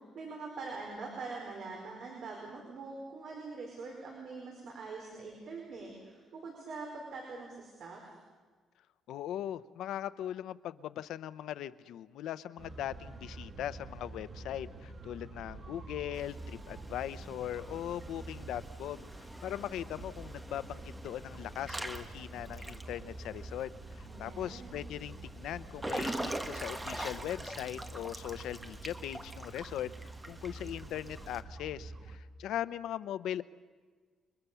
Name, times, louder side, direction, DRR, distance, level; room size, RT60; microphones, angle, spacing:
voice 1, 0.0-8.1 24.1-24.8, right 3 dB, 55° right, 0 dB, 5.0 m, -44 dB
voice 2, 9.1-29.9 30.3-33.4, left 11 dB, 85° left, 14 dB, 0.8 m, -40 dB
sound 1, 12.6-32.2, right 2 dB, 30° right, 1.7 m, -48 dB
Water / Splash splatter / Drip, 16.1-31.4, right 1 dB, 10° right, 1.5 m, -44 dB
29.5 x 23.0 x 7.0 m, 1.5 s
cardioid pair, 165°, 0 cm